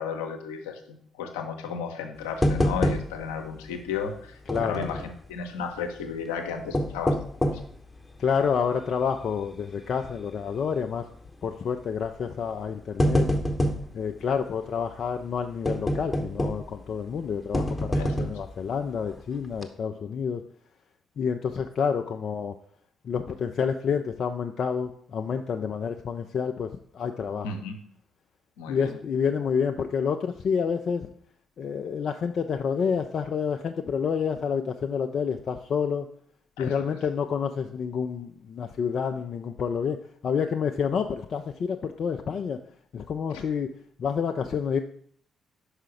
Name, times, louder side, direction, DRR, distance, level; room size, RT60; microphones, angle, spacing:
voice 1, 0.0-7.2 18.0-18.1 27.4-27.8 28.6-29.0 36.6-37.0 43.3-43.4, left 6 dB, 75° left, 5 dB, 0.7 m, -34 dB
sound 1, 2.4-3.4 3.7-3.8 4.5-5.1 6.5-7.8 8.3-8.4 9.0-9.3 9.6-9.7 10.9-11.2 12.0-12.2 12.6-13.9 15.6-16.8 17.5-18.5 19.1-19.2 19.5-19.6, equal, 20° left, 0.8 m, -26 dB
voice 2, 4.5-4.9 8.2-11.1 11.4-13.3 13.9-20.4 21.2-22.6 23.0-27.5 28.7-31.1 31.6-36.1 36.6-42.6 42.9-44.8, left 6 dB, 50° left, 6 dB, 0.4 m, -28 dB
5.6 x 4.9 x 5.0 m, 0.62 s
figure-of-eight pair, 45°, 0 cm